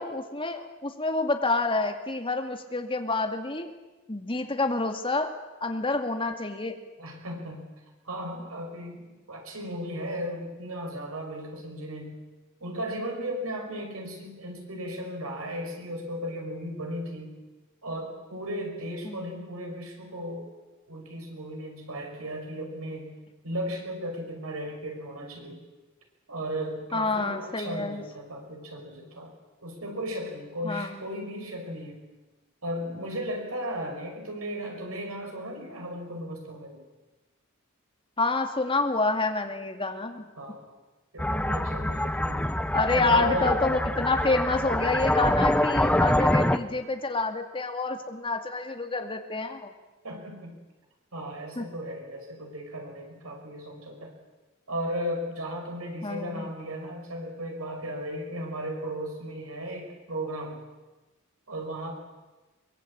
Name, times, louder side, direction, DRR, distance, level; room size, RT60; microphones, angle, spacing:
voice 1, 0.0-3.7 4.1-5.3 5.6-6.8 19.0-19.2 26.9-28.0 30.6-31.0 38.2-40.3 42.7-49.7 51.6-51.7 56.0-56.5, left 3 dB, 25° left, 5 dB, 2.3 m, -28 dB
voice 2, 7.0-7.7 8.0-12.2 12.6-17.4 17.8-20.5 20.9-23.2 23.4-25.6 26.3-29.3 29.6-32.0 32.6-36.8 40.4-40.7 41.1-42.5 42.9-43.6 50.0-50.6 51.1-54.1 54.7-60.6 61.5-61.9, equal, 85° right, 2 dB, 5.8 m, -35 dB
sound 1, 41.2-46.6, left 1 dB, 5° left, 0.9 m, -25 dB
23.0 x 21.0 x 8.8 m, 1.2 s
head